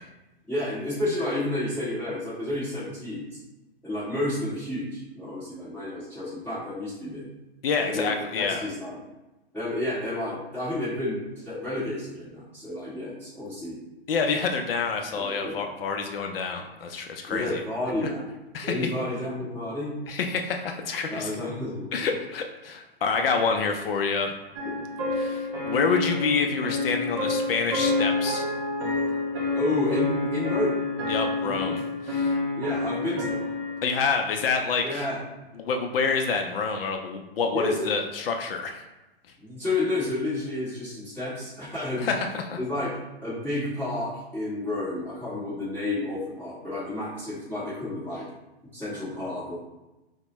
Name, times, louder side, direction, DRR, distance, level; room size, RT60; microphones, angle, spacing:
voice 1, 0.5-3.4 3.8-7.3 7.8-9.0 9.5-13.8 15.1-15.6 17.3-18.3 18.6-20.0 21.1-22.2 24.6-24.8 29.5-30.8 31.4-31.8 32.5-33.4 34.8-35.2 37.5-37.9 39.4-42.1 42.6-48.3 48.7-49.6, left 1 dB, 5° left, -14 dB, 1.1 m, -31 dB
voice 2, 7.6-8.7 14.1-17.6 18.5-18.7 20.1-21.3 21.9-24.3 25.2-28.4 31.1-32.4 33.8-35.0 35.6-38.8 42.0-42.6, left 5 dB, 60° left, 4 dB, 0.5 m, -27 dB
sound 1, 24.5-34.0, left 3 dB, 30° right, 0.6 m, -28 dB
4.3 x 2.1 x 3.0 m, 1.0 s
hypercardioid pair, 145°, 32 cm